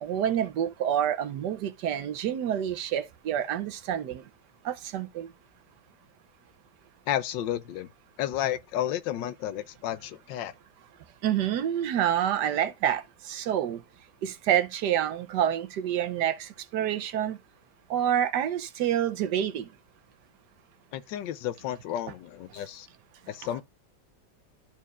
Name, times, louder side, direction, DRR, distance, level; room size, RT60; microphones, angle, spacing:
voice 1, 0.0-4.2 4.6-5.3 11.2-13.8 14.2-17.4 17.9-19.7, right 10 dB, 75° right, 1.3 m, -28 dB
voice 2, 7.1-7.9 8.2-10.5 20.9-22.9 23.3-23.6, left 11 dB, 85° left, 1.4 m, -32 dB
12.5 x 4.6 x 2.4 m
omnidirectional pair, 1.9 m